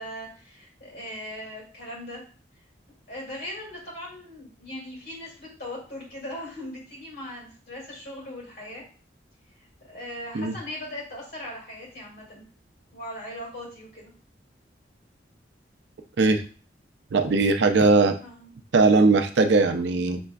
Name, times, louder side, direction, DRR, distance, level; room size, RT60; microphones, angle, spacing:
voice 1, 0.0-2.2 3.1-8.8 9.9-12.4 12.9-14.1 18.2-18.5, left 1 dB, 55° left, -3 dB, 2.3 m, -39 dB
voice 2, 17.1-18.1 18.7-20.2, right 3 dB, 75° right, 7 dB, 0.5 m, -19 dB
6.1 x 3.3 x 2.3 m, 0.39 s
head